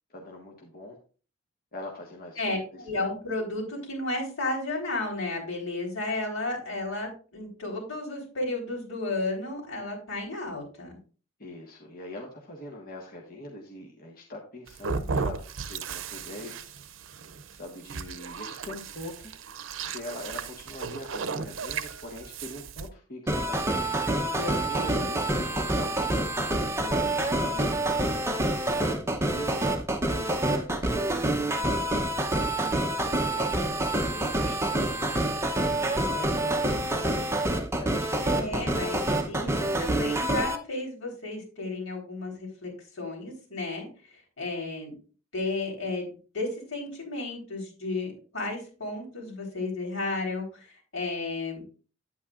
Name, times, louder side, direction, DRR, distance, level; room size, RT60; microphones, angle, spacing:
voice 1, 0.1-1.0 1.7-2.8 11.4-15.4 15.7-16.5 17.5-19.3 19.9-25.9 26.8-28.1 28.5-29.1 29.4-31.9 32.6-35.0 35.6-39.2, left 1 dB, 45° left, -1 dB, 1.5 m, -42 dB
voice 2, 2.4-10.9 24.7-25.1 38.2-42.7 43.0-43.9 44.4-44.9 45.3-46.1 46.3-51.6, left 2 dB, 85° left, 0 dB, 4.0 m, -33 dB
sound 1, 14.7-22.9, right 5 dB, 70° right, 0.6 m, -35 dB
sound 2, 23.3-40.6, right 1 dB, 15° right, 0.7 m, -27 dB
9.4 x 8.6 x 2.5 m, 0.37 s
head